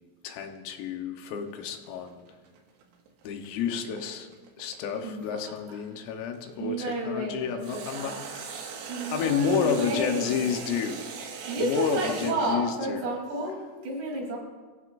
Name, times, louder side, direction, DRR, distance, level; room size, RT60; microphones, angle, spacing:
voice 1, 0.2-2.2 3.3-4.3 4.6-8.9 9.1-11.1 11.6-13.1, left 7 dB, 80° left, 5 dB, 3.8 m, -30 dB
sound 1, 1.3-6.5 7.6-12.3, right 6 dB, 85° right, 4.4 m, -40 dB
voice 2, 5.0-5.4 6.6-8.2 8.9-10.5 11.5-13.6 13.8-14.4, right 2 dB, 55° right, -2 dB, 5.3 m, -31 dB
27.0 x 16.0 x 2.6 m, 1.4 s
omnidirectional pair, 5.9 m